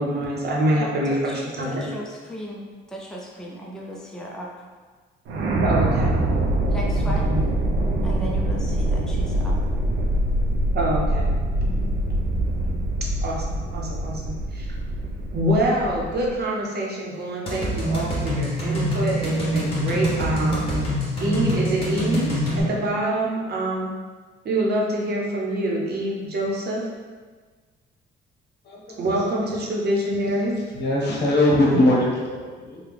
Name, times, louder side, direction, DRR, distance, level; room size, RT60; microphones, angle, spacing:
voice 1, 0.0-1.9 5.6-6.1 7.0-7.4 10.7-11.3 13.2-14.7 15.3-20.9 21.2-23.9 24.4-26.9 29.0-30.6, right 1 dB, 55° right, -3 dB, 0.8 m, -25 dB
voice 2, 0.8-4.7 6.7-7.3 8.0-9.6, equal, 5° left, -3 dB, 0.5 m, -36 dB
sound 1, 5.3-16.3, right 1 dB, 80° right, 0.6 m, -24 dB
sound 2, 17.5-22.6, right 1 dB, 30° left, 1.3 m, -25 dB
voice 3, 30.7-32.8, left 1 dB, 60° left, -4 dB, 0.9 m, -20 dB
3.2 x 2.3 x 3.5 m, 1.4 s
cardioid pair, 90°, 20 cm